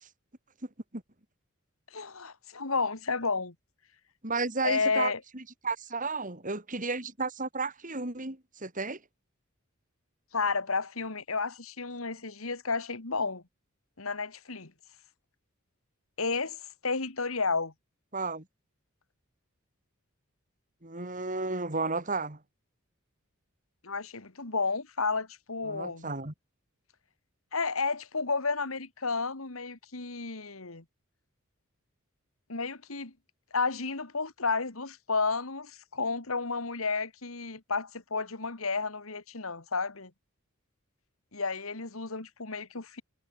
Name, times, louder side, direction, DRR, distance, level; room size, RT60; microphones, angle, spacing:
voice 1, 1.9-3.5 4.6-5.2 10.3-13.4 14.0-14.7 16.2-17.7 23.8-26.1 27.5-30.8 32.5-33.1 33.5-40.1 41.3-43.0, left 4 dB, 85° left, 2.4 m, -32 dB
voice 2, 4.2-9.0 18.1-18.4 20.8-22.4 25.7-26.3, right 3 dB, 40° right, 4.1 m, -33 dB
head